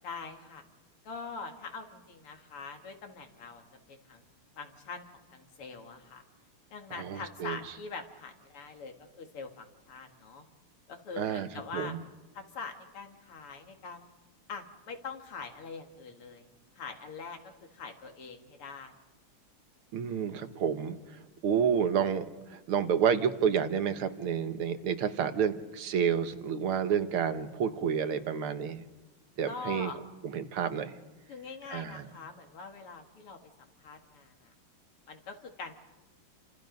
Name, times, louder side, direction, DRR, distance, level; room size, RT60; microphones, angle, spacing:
voice 1, 0.0-0.6 1.0-3.6 3.9-4.2 4.6-6.2 6.7-10.5 10.9-11.9 12.3-14.1 14.5-16.5 16.7-19.0 20.7-20.8 29.5-30.0 31.3-34.5 35.1-35.7, left 4 dB, 90° left, 4 dB, 3.0 m, -43 dB
voice 2, 7.0-7.6 11.2-11.5 11.7-12.0 19.9-21.0 21.4-22.2 22.5-28.9 29.4-29.9 30.3-30.9 31.7-32.1, right 7 dB, 80° right, 9 dB, 2.1 m, -29 dB
28.5 x 26.0 x 5.3 m, 1.1 s
omnidirectional pair, 2.4 m